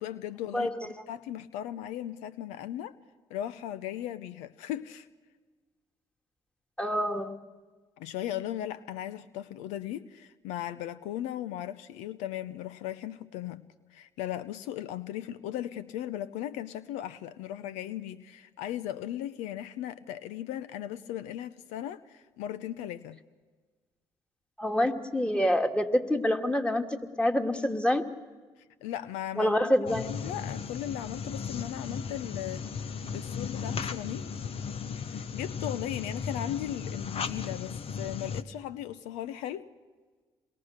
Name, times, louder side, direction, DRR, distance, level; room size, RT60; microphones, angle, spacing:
voice 1, 0.0-3.0 3.3-5.1 8.0-13.6 13.9-23.2 28.8-34.3 35.1-39.7, left 12 dB, 80° left, 0.7 m, -37 dB
voice 2, 0.5-0.9 6.8-7.3 24.6-28.1 29.4-30.1, left 1 dB, 10° left, 2.3 m, -27 dB
sound 1, 29.9-38.4, left 6 dB, 55° left, 1.2 m, -36 dB
27.5 x 22.0 x 6.6 m
hypercardioid pair, 55°, 12 cm